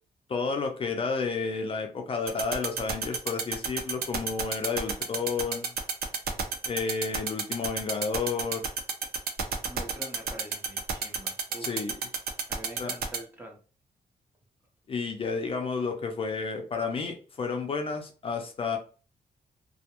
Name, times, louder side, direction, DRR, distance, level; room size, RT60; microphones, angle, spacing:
voice 1, 0.3-5.7 6.6-8.7 11.6-12.0 12.8-12.9 14.9-18.8, left 4 dB, 35° left, 3 dB, 0.4 m, -31 dB
sound 1, 2.3-13.2, right 6 dB, 80° right, 0.5 m, -29 dB
voice 2, 9.6-11.7 12.5-13.6, right 1 dB, 10° right, 0 dB, 0.7 m, -45 dB
2.3 x 2.1 x 2.9 m, 0.37 s
wide cardioid pair, 155°, 16 cm